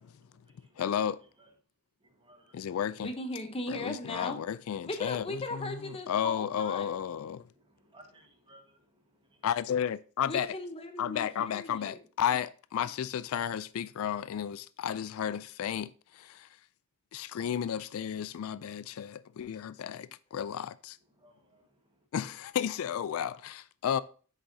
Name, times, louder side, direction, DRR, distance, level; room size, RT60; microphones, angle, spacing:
voice 1, 0.0-1.5 2.0-3.0 7.4-9.5 21.0-22.1, right 1 dB, 25° right, 1.4 m, -62 dB
voice 2, 0.8-1.2 2.5-3.1 3.7-5.8 6.1-7.5 9.4-10.5 11.0-16.5 17.1-21.0 22.1-24.0, left 8 dB, 70° left, 0.3 m, -33 dB
voice 3, 3.0-4.4 4.8-6.9 10.3-12.0, left 2 dB, 25° left, 0.8 m, -38 dB
7.9 x 6.5 x 2.7 m
head